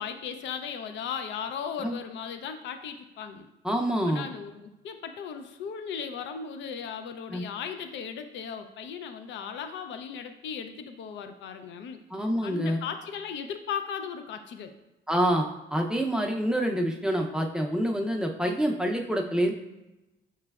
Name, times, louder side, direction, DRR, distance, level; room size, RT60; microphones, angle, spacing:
voice 1, 0.0-3.5 4.1-14.7, left 7 dB, 70° left, 8 dB, 0.4 m, -37 dB
voice 2, 3.6-4.3 7.3-7.4 12.1-12.8 15.1-19.5, equal, 5° right, 2 dB, 0.5 m, -27 dB
5.8 x 3.2 x 2.3 m, 0.96 s
cardioid pair, 90°, 20 cm